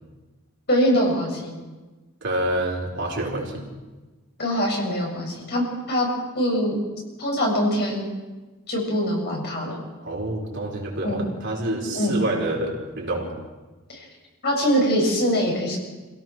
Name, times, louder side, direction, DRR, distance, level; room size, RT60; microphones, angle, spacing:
voice 1, 0.7-1.5 4.4-6.1 6.4-6.8 7.2-8.1 8.7-9.8 11.0-11.2 11.9-12.2 13.9-14.0 14.4-15.8, equal, 50° left, -1 dB, 7.2 m, -23 dB
voice 2, 2.2-3.6 10.0-13.3, right 1 dB, 55° right, -1 dB, 4.9 m, -27 dB
27.0 x 17.5 x 6.3 m, 1.2 s
head